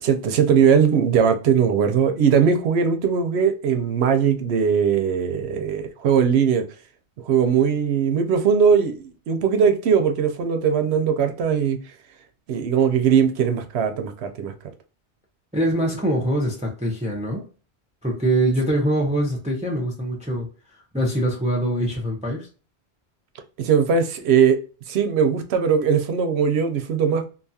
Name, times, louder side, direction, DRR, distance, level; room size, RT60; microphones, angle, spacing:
voice 1, 0.0-6.6 7.2-11.8 12.5-14.5 23.6-24.6 24.9-27.3, right 7 dB, 85° right, 0.9 m, -20 dB
voice 2, 15.5-17.4 18.0-20.5 20.9-22.5, right 1 dB, 10° right, 0.5 m, -23 dB
2.6 x 2.3 x 2.6 m
omnidirectional pair, 1.1 m